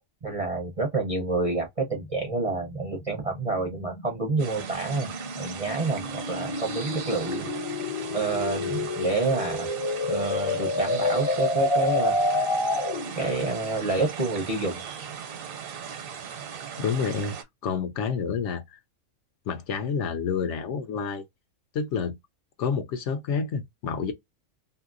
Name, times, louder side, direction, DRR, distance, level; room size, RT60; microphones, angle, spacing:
voice 1, 0.2-5.1 5.4-7.5 8.1-9.7 10.1-12.2 13.2-14.8, right 3 dB, 40° right, 0.5 m, -28 dB
sound 1, 1.9-13.2, left 2 dB, 30° left, 0.6 m, -29 dB
sound 2, 4.4-17.4, right 7 dB, 90° right, 1.1 m, -38 dB
voice 2, 16.8-17.3 17.6-18.8 19.5-21.2 21.7-22.1 22.6-24.1, left 6 dB, 70° left, 0.9 m, -28 dB
2.7 x 2.7 x 2.5 m
omnidirectional pair, 1.4 m